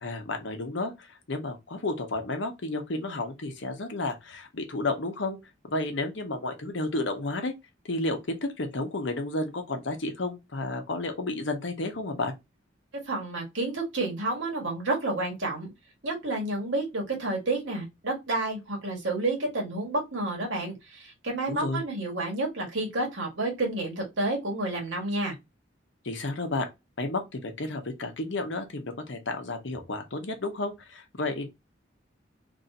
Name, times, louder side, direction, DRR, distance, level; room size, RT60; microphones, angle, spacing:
voice 1, 0.0-5.4 5.7-7.5 7.9-12.3 21.5-21.8 26.0-26.7 27.0-31.5, left 2 dB, 75° left, 0.9 m, -32 dB
voice 2, 13.1-15.7 16.0-25.3, right 2 dB, 80° right, 1.6 m, -30 dB
3.1 x 2.7 x 4.0 m
head